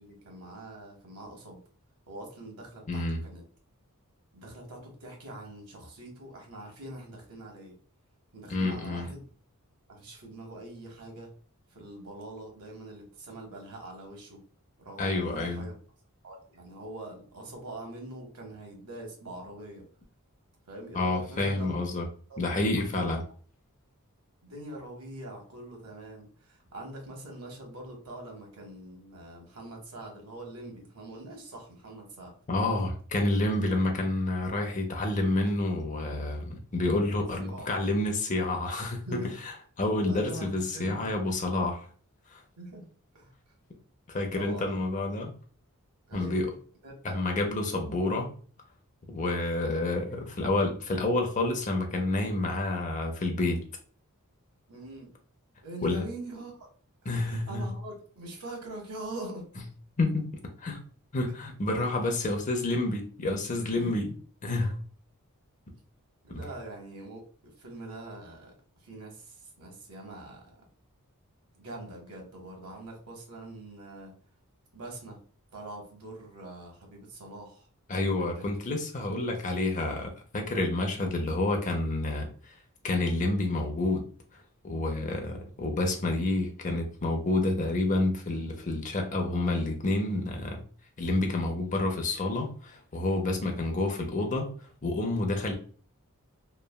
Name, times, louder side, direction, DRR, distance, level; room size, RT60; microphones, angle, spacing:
voice 1, 0.0-1.6 2.1-3.4 4.3-7.8 8.3-9.3 9.9-11.3 11.7-14.4 14.8-15.7 16.2-19.9 20.7-21.8 22.3-22.5 22.9-23.1 24.4-32.4 33.6-33.7 37.4-37.7 39.0-39.3 40.1-41.1 42.6-42.8 43.1-43.3 44.3-44.7 46.1-46.5 46.8-47.2 54.7-55.1 55.6-56.7 57.0-59.5 63.6-64.0 66.2-70.6 71.5-74.1 74.7-75.2 75.5-77.7 78.1-78.5, right 1 dB, 90° right, 1.1 m, -43 dB
voice 2, 2.9-3.2 8.5-9.1 15.0-15.7 20.9-22.1 22.4-23.2 32.5-39.0 39.8-41.8 42.3-42.4 44.1-45.3 46.1-46.5 47.0-48.3 49.1-53.6 55.8-56.0 57.1-57.7 60.0-60.3 60.6-60.8 61.1-64.1 64.4-64.8 66.3-66.4 77.9-82.3 82.8-84.1 84.6-90.6 91.0-94.5 94.8-95.5, left 2 dB, 35° left, 0.6 m, -29 dB
3.1 x 2.2 x 2.2 m
head